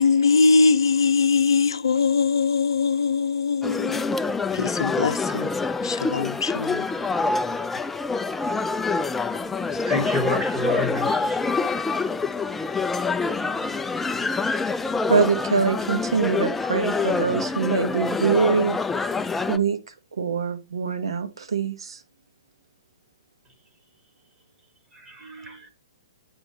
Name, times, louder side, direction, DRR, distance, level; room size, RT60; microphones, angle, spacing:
voice 1, 0.0-5.5 5.8-6.9 9.7-9.8, left 4 dB, 75° left, 0.6 m, -22 dB
sound 1, 3.6-19.6, left 4 dB, 10° left, 0.3 m, -26 dB
voice 2, 9.8-11.4 24.9-25.7, equal, 15° right, 1.7 m, -29 dB
voice 3, 15.1-18.8 19.5-19.8 20.2-22.0 25.2-25.6, right 5 dB, 75° right, 1.0 m, -24 dB
8.9 x 3.6 x 4.2 m
hypercardioid pair, 125°, 3 cm